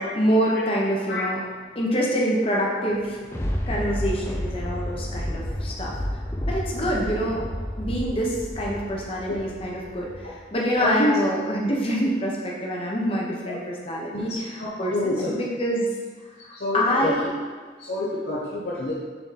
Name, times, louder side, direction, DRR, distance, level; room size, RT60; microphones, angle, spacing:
voice 1, 0.0-1.4 1.7-3.2 3.7-5.9 6.4-7.4 7.8-14.5 14.8-15.9 16.4-17.3, equal, 30° left, -3 dB, 1.0 m, -26 dB
Thunder, 2.9-10.4 10.9-11.0, equal, 15° left, 0.5 m, -31 dB
voice 2, 10.5-11.2 13.5-13.6 14.1-15.3 16.5-17.1 17.8-18.9, left 1 dB, 60° left, -6 dB, 0.9 m, -27 dB
7.1 x 3.9 x 4.2 m, 1.5 s
head